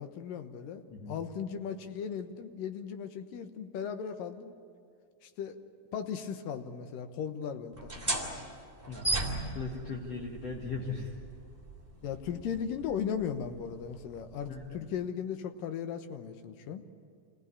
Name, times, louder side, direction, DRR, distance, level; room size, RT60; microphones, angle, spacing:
voice 1, 0.0-4.5 5.2-5.6 5.9-8.4 12.0-16.8, left 7 dB, 80° left, 7 dB, 2.8 m, -37 dB
sound 1, 7.7-15.0, right 2 dB, 5° right, 2.9 m, -38 dB
voice 2, 8.9-11.1 14.5-14.8, left 4 dB, 50° left, -1 dB, 2.8 m, -39 dB
26.5 x 18.0 x 9.8 m, 2.2 s
omnidirectional pair, 4.0 m